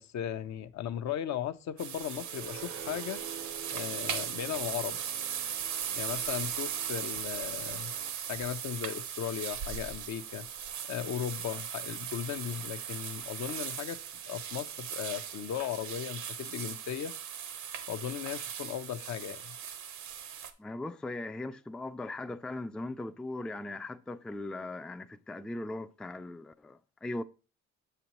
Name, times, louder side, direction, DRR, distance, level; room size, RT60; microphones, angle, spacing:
voice 1, 0.0-3.2 3.7-5.0 5.9-7.9 8.3-10.5 10.9-14.0 14.2-17.1 17.9-19.6, left 10 dB, 65° left, 0.7 m, -37 dB
sound 1, 1.8-20.5, right 8 dB, 75° right, 0.9 m, -38 dB
sound 2, 2.1-8.1, right 8 dB, 50° right, 0.6 m, -48 dB
voice 2, 20.6-27.2, left 2 dB, 5° left, 0.3 m, -39 dB
7.2 x 6.8 x 3.0 m
cardioid pair, 90°, 30 cm